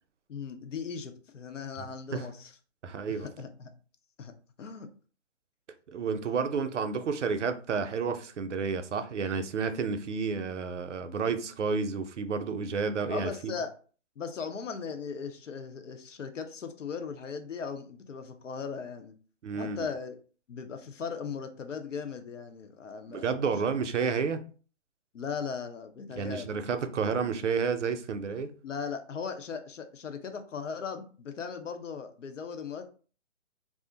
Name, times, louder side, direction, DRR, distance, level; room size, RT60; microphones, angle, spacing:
voice 1, 0.3-2.5 3.1-3.7 4.2-4.3 4.6-4.9 13.1-13.7 14.2-19.1 19.5-20.1 20.5-23.3 25.1-26.6 28.6-32.9, left 6 dB, 75° left, 0.7 m, -38 dB
voice 2, 1.8-2.3 2.8-3.3 5.9-13.5 19.4-19.9 23.1-24.4 26.2-28.5, right 5 dB, 70° right, 0.6 m, -31 dB
2.4 x 2.1 x 3.8 m
hypercardioid pair, 170°, 37 cm